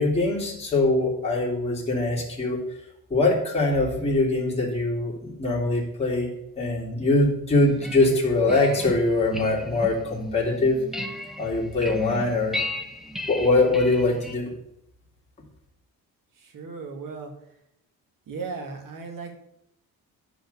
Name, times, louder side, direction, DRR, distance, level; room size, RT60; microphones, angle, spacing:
voice 1, 0.0-2.6 3.1-6.3 6.6-10.8 11.4-12.6 13.3-14.5, left 2 dB, 15° left, -4 dB, 2.5 m, -23 dB
sound 1, 7.6-14.3, left 1 dB, ahead, 0.6 m, -36 dB
voice 2, 16.4-17.3 18.3-19.3, right 4 dB, 60° right, 4 dB, 1.8 m, -36 dB
10.0 x 5.1 x 6.8 m, 0.80 s
cardioid pair, 165°, 37 cm